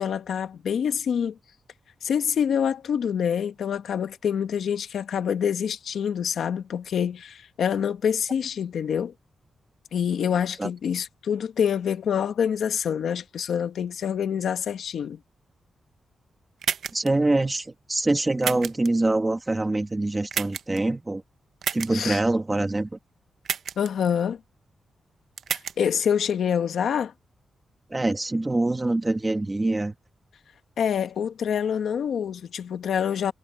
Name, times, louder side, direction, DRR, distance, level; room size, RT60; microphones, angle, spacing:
voice 1, 0.0-1.4 2.0-9.1 9.9-15.2 21.9-22.2 23.8-24.4 25.5-27.1 30.8-33.3, left 8 dB, 80° left, 1.4 m, -26 dB
sound 1, 16.6-17.1 18.4-18.9 20.3-20.8 21.6-21.9 23.4-23.9 25.4-25.7, right 7 dB, 70° right, 0.7 m, -29 dB
voice 2, 16.9-21.2 21.7-22.9 27.9-29.9, right 2 dB, 15° right, 1.8 m, -24 dB
wide cardioid pair, 160°, 0 cm